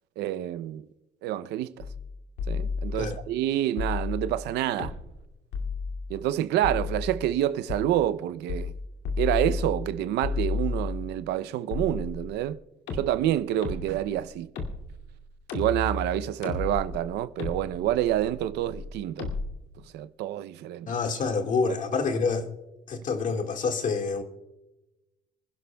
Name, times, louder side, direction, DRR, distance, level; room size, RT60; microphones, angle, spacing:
voice 1, 0.2-0.8 1.2-1.9 2.5-4.9 6.1-8.7 9.2-12.6 12.9-14.5 15.5-19.3 19.9-20.9, right 12 dB, 80° right, 0.6 m, -28 dB
sound 1, 1.8-2.1 2.4-3.2 3.8-4.4 4.8-5.2 5.5-6.1 6.6-7.3 7.7-7.8 8.5-8.8 9.1-9.9 10.2-11.1 11.7-12.5 12.9-19.5, left 4 dB, 85° left, 2.4 m, -33 dB
voice 2, 20.9-22.5 22.9-24.2, left 4 dB, 50° left, 1.8 m, -27 dB
27.0 x 11.5 x 2.3 m
cardioid pair, 110°, 17 cm